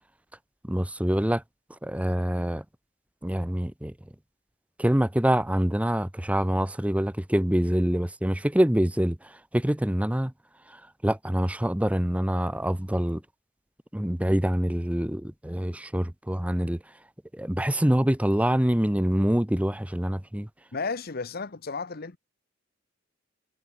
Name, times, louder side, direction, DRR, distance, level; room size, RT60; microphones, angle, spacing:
voice 1, 0.7-1.4 1.8-2.6 3.2-3.9 4.8-10.3 10.7-13.2 13.9-16.8 17.3-20.5, equal, 5° right, 0.7 m, -25 dB
voice 2, 20.7-22.2, left 4 dB, 50° left, 1.0 m, -33 dB
head